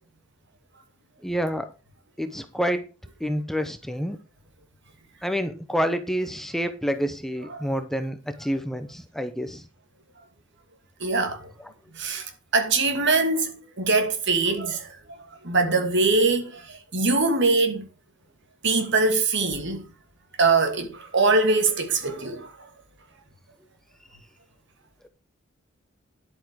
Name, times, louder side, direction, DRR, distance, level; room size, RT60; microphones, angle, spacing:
voice 1, 1.2-1.7 2.2-2.9 3.2-4.2 5.2-9.7, equal, ahead, 0.8 m, -28 dB
voice 2, 11.0-11.5 12.0-17.9 18.6-19.8 20.4-22.5, right 3 dB, 60° right, 2.5 m, -23 dB
10.5 x 8.3 x 4.7 m
head